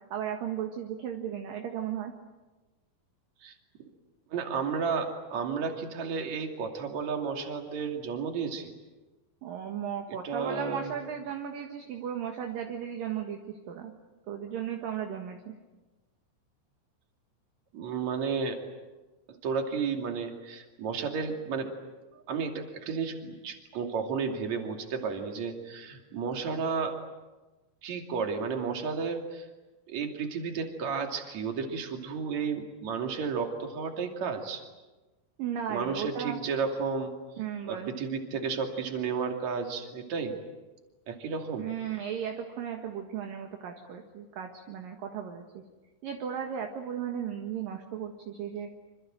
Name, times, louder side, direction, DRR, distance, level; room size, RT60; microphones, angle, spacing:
voice 1, 0.1-2.1 9.4-13.9 14.3-15.5 35.4-36.4 37.4-37.9 41.6-45.6 46.0-48.7, right 8 dB, 60° right, 3 dB, 2.8 m, -35 dB
voice 2, 4.3-8.7 10.2-10.9 17.7-18.6 19.3-21.7 22.1-27.0 27.8-29.5 29.9-34.6 35.7-37.2 37.7-40.4 41.1-41.7, right 5 dB, 45° right, 3 dB, 3.3 m, -32 dB
26.5 x 26.0 x 7.7 m, 1.2 s
omnidirectional pair, 5.4 m